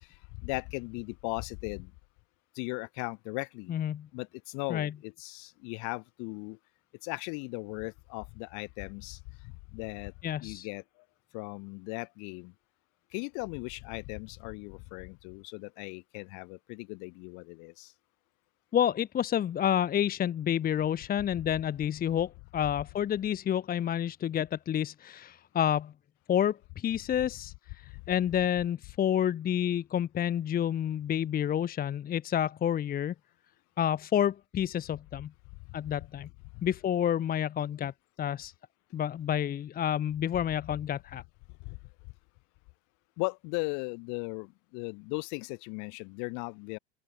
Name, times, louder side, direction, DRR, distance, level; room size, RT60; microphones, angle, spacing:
voice 1, 0.4-1.9 2.6-3.7 4.1-6.6 7.0-9.2 9.7-10.1 10.4-10.8 11.3-12.5 13.1-17.9 43.2-44.5 44.7-46.8, left 34 dB, 55° left, 5.9 m, -37 dB
voice 2, 3.7-4.1 4.7-4.9 10.2-10.7 18.7-25.9 26.3-33.1 33.8-35.3 35.7-36.3 36.6-37.9 38.2-38.5 38.9-41.2, left 10 dB, 25° left, 1.0 m, -29 dB
hypercardioid pair, 110°, 35 cm